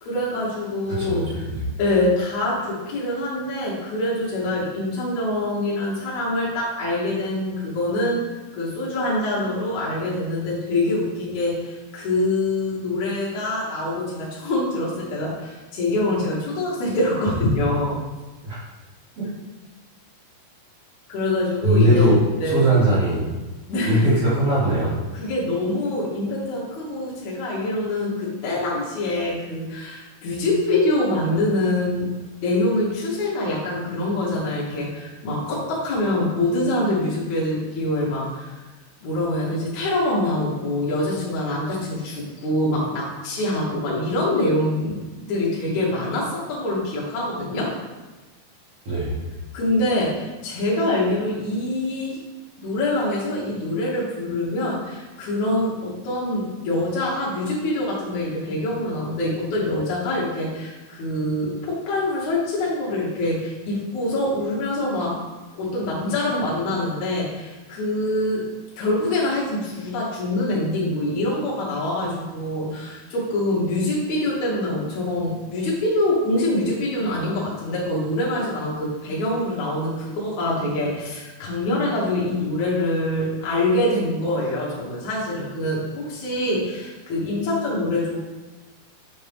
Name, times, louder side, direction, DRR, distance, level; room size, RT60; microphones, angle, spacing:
voice 1, 0.0-1.4 1.8-8.2 8.5-18.0 21.1-22.1 22.4-22.6 23.7-24.1 25.1-32.1 32.4-38.5 39.0-47.8 49.5-52.2 52.6-65.2 65.5-68.5 68.8-88.2, left 1 dB, 65° left, -6 dB, 1.9 m, -25 dB
voice 2, 1.0-1.7 18.4-18.6 19.2-19.3 21.6-22.2 22.4-23.2 23.8-24.9 48.9-49.1, right 1 dB, 50° right, -12 dB, 2.3 m, -20 dB
7.0 x 4.3 x 3.5 m, 1.2 s
omnidirectional pair, 4.7 m